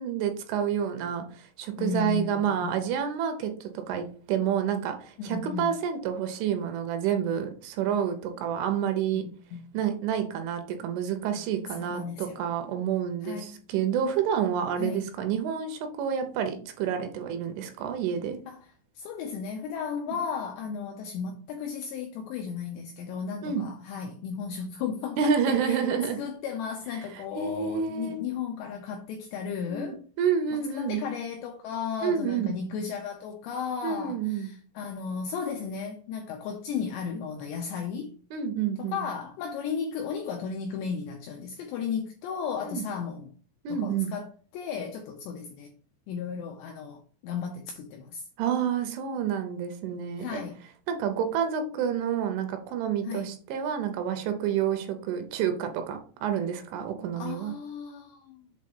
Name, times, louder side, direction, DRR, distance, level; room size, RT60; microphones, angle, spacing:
voice 1, 0.0-9.2 9.7-18.4 20.1-20.2 23.4-23.6 25.2-26.2 27.0-27.1 27.4-28.2 29.7-31.0 32.0-32.5 33.8-34.5 38.3-39.1 42.6-42.8 43.6-44.1 48.4-50.4 50.9-57.5, right 8 dB, 80° right, 3.0 m, -29 dB
voice 2, 1.8-2.8 5.2-5.7 9.2-9.6 11.7-12.5 13.2-13.6 14.8-15.1 18.5-18.7 19.0-25.9 26.2-30.0 30.5-38.2 38.8-43.3 43.7-45.7 46.1-48.2 50.2-50.6 53.0-53.3 57.2-58.4, left 6 dB, 85° left, 2.5 m, -35 dB
7.6 x 3.0 x 5.3 m
omnidirectional pair, 5.8 m